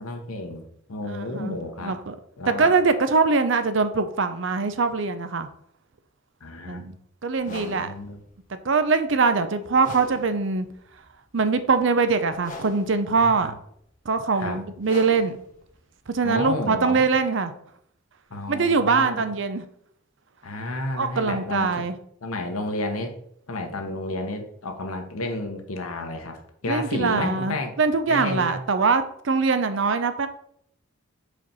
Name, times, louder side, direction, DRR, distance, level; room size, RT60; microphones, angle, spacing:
voice 1, 0.0-1.9 2.4-2.7 6.4-6.8 7.5-8.2 13.2-13.5 14.4-14.6 16.2-17.1 18.3-19.2 20.4-21.7 22.2-23.1 23.5-27.7 28.1-28.6, left 2 dB, 85° left, 5 dB, 1.1 m, -31 dB
voice 2, 1.0-1.6 1.8-2.1 2.6-5.5 6.7-6.9 7.2-7.9 8.5-10.7 11.3-13.5 14.1-15.4 16.1-17.5 18.5-19.6 21.0-21.9 26.7-30.3, right 4 dB, 60° right, 10 dB, 0.6 m, -23 dB
sound 1, 7.4-17.2, left 2 dB, 35° left, 1.0 m, -44 dB
5.0 x 4.5 x 5.4 m, 0.68 s
head